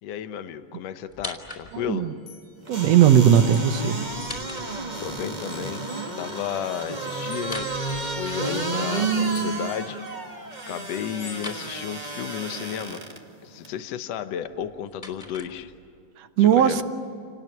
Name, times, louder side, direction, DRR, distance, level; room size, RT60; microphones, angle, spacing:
voice 1, 0.0-2.1 5.0-5.8 6.2-7.7 8.2-10.0 10.7-13.0 13.4-15.7 16.4-16.8, left 9 dB, 60° left, 10 dB, 1.9 m, -33 dB
sound 1, 1.1-2.0 4.0-5.2 7.4-8.7 11.3-11.7 14.4-16.0, left 2 dB, 10° left, 3.1 m, -41 dB
sound 2, 1.7-5.2 5.5-12.4, left 6 dB, 90° left, 5.4 m, -51 dB
sound 3, 2.7-13.2 13.6-13.7, right 3 dB, 20° right, 1.2 m, -31 dB
voice 2, 2.7-4.0 16.2-16.8, right 9 dB, 65° right, 10 dB, 1.8 m, -18 dB
29.0 x 19.5 x 9.3 m, 2.6 s
omnidirectional pair, 3.8 m